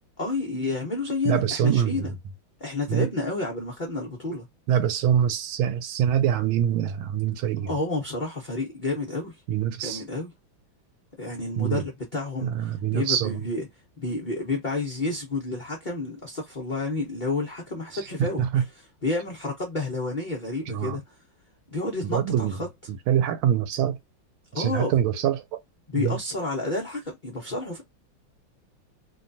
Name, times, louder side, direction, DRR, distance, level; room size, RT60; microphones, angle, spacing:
voice 1, 0.2-2.1 2.6-4.5 7.6-9.4 9.8-10.3 11.2-13.7 14.0-18.7 19.0-21.2 21.7-22.7 24.5-24.9 25.9-27.8, left 2 dB, 65° left, 0.4 m, -30 dB
voice 2, 1.2-2.1 2.9-3.1 4.7-7.7 9.5-10.0 11.6-11.8 12.4-13.4 17.9-18.6 20.7-21.0 22.1-22.6 23.1-24.0 24.5-25.6 26.0-26.2, right 9 dB, 85° right, 1.4 m, -24 dB
3.2 x 2.3 x 2.6 m
omnidirectional pair, 2.2 m